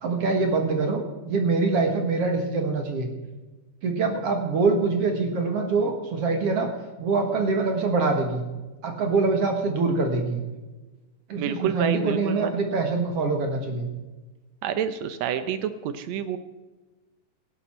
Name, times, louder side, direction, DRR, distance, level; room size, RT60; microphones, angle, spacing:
voice 1, 0.0-3.1 3.8-6.7 7.0-8.4 8.8-10.4 11.3-13.9, right 3 dB, 55° right, 4 dB, 2.1 m, -24 dB
voice 2, 11.4-12.5 14.6-16.4, right 8 dB, 80° right, 11 dB, 1.6 m, -28 dB
16.5 x 11.5 x 4.4 m, 1.2 s
omnidirectional pair, 3.9 m